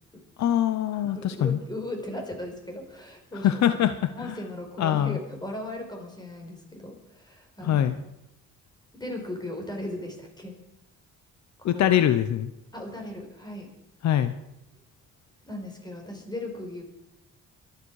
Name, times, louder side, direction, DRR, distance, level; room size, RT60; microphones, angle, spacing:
voice 1, 0.4-1.6 3.4-4.3 4.8-5.2 7.6-8.0 11.6-12.5 14.0-14.3, left 10 dB, 65° left, 12 dB, 0.8 m, -23 dB
voice 2, 0.9-3.8 4.1-7.9 8.9-10.6 11.6-11.9 12.7-13.7 15.5-16.8, left 1 dB, 15° left, 3 dB, 4.5 m, -37 dB
23.5 x 9.7 x 4.8 m, 0.86 s
cardioid pair, 90°, 30 cm